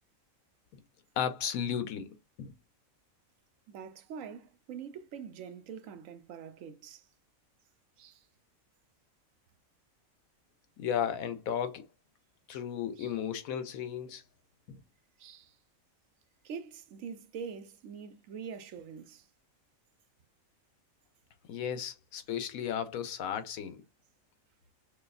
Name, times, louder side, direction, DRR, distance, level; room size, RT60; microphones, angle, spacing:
voice 1, 1.2-2.1 2.4-2.6 10.8-11.9 12.5-14.2 14.7-14.8 21.5-23.8, left 8 dB, 85° left, 1.1 m, -34 dB
voice 2, 3.7-7.1 8.0-8.3 13.0-13.1 15.2-15.6 16.4-19.3, right 6 dB, 75° right, 1.0 m, -44 dB
6.4 x 2.3 x 2.3 m
omnidirectional pair, 1.4 m